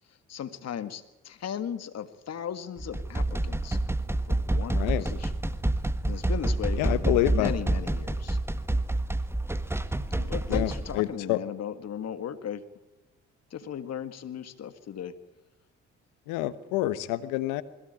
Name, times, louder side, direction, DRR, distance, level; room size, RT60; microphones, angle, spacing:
voice 1, 0.1-3.8 4.3-5.3 6.1-8.4 10.1-12.7 13.5-15.2, left 9 dB, 55° left, 12 dB, 1.9 m, -37 dB
sound 1, 2.8-11.0, right 1 dB, 10° right, 1.6 m, -28 dB
voice 2, 4.7-5.1 6.8-7.5 10.5-11.4 16.3-17.6, left 15 dB, 85° left, 15 dB, 1.2 m, -27 dB
21.5 x 16.5 x 9.0 m, 1.0 s
supercardioid pair, 60°, 30 cm